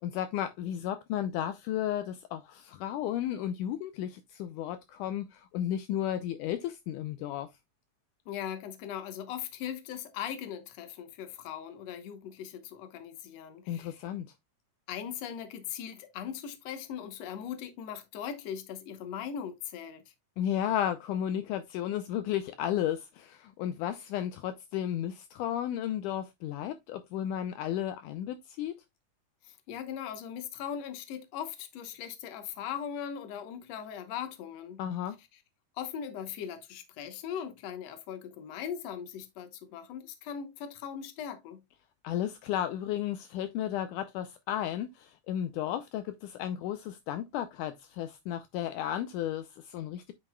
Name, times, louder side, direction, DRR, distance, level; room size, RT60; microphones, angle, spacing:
voice 1, 0.0-7.5 13.7-14.3 20.4-28.7 34.8-35.2 42.0-50.1, left 11 dB, 80° left, 2.1 m, -33 dB
voice 2, 8.3-14.0 14.9-20.0 29.4-34.8 35.8-41.6, left 8 dB, 65° left, 2.0 m, -39 dB
8.8 x 6.0 x 2.3 m
omnidirectional pair, 3.8 m